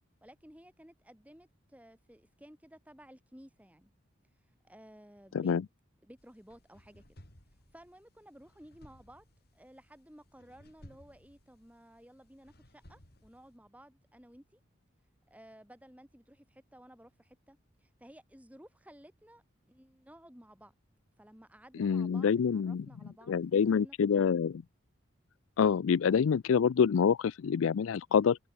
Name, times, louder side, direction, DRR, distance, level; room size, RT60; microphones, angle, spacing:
voice 1, 0.2-3.9 4.5-5.6 6.0-7.0 7.7-9.3 9.5-14.6 15.3-20.7 21.2-24.2, equal, 5° right, 4.3 m, -55 dB
sound 1, 6.2-13.5, equal, 50° left, 6.0 m, -60 dB
voice 2, 21.8-22.8 23.3-24.5 25.6-28.4, left 6 dB, 85° left, 0.4 m, -26 dB
head